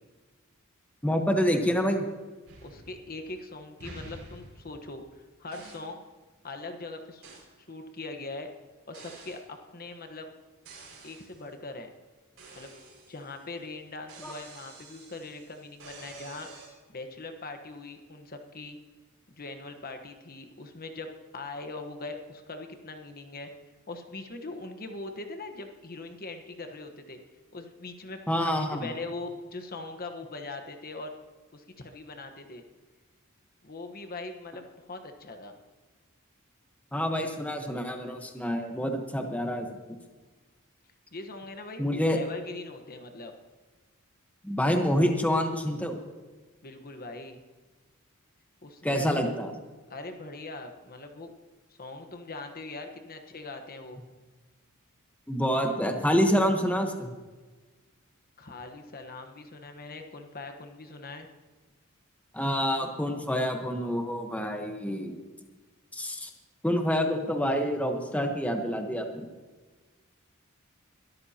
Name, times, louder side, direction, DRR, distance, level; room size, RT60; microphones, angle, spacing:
voice 1, 1.0-2.1 14.2-14.3 28.3-28.9 36.9-40.0 41.8-42.2 44.4-45.9 48.8-49.5 55.3-57.1 62.3-65.2 65.9-66.3 66.6-69.3, equal, 5° left, 3 dB, 1.2 m, -27 dB
sound 1, 2.4-3.4 3.8-5.1 5.5-6.0 7.2-7.5 8.9-9.5 10.6-11.4 12.4-13.5 14.1-16.7, right 2 dB, 65° right, 5.5 m, -49 dB
voice 2, 2.6-6.0 6.4-7.3 7.7-8.5 8.9-10.3 11.0-11.9 12.5-12.7 13.1-16.5 16.9-18.8 19.3-23.5 23.9-27.2 27.5-31.2 31.5-32.6 33.6-35.6 41.1-43.3 46.6-47.4 48.6-49.2 49.9-51.3 51.8-54.0 58.4-61.3, left 3 dB, 45° left, 6 dB, 1.2 m, -41 dB
21.5 x 13.5 x 2.9 m, 1.3 s
head